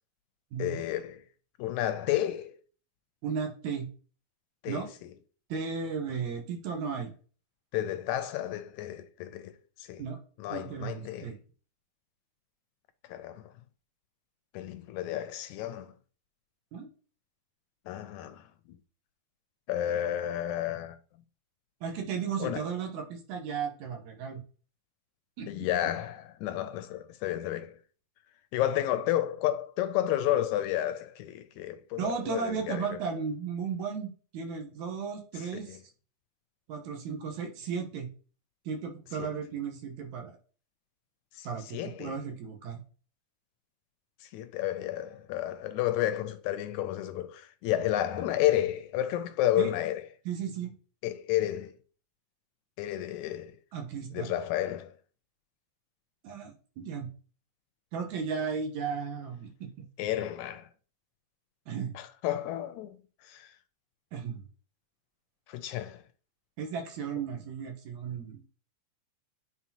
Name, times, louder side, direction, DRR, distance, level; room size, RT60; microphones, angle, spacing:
voice 1, 0.6-1.2 1.6-2.6 4.6-4.9 7.7-9.5 9.9-10.0 10.4-11.3 13.1-13.4 14.5-15.9 17.9-18.8 19.7-21.0 22.4-22.6 25.5-27.8 28.5-33.0 35.5-35.8 39.2-39.3 41.4-41.5 41.7-42.2 44.2-50.0 51.0-51.7 52.8-53.5 54.1-54.9 60.0-60.7 62.0-63.0 63.2-63.5 65.5-66.0, left 12 dB, 80° left, 1.8 m, -31 dB
voice 2, 3.2-3.9 4.7-4.9 5.5-7.1 10.0-10.2 10.5-11.4 16.7-16.9 21.8-24.4 25.4-25.7 32.0-35.8 36.7-38.1 38.7-40.4 41.4-42.8 49.6-49.7 50.3-50.7 53.7-54.3 56.2-57.1 57.9-59.7 61.7-62.0 64.1-64.4 66.6-68.4, right 6 dB, 75° right, 2.4 m, -35 dB
8.5 x 4.1 x 2.9 m
omnidirectional pair, 3.5 m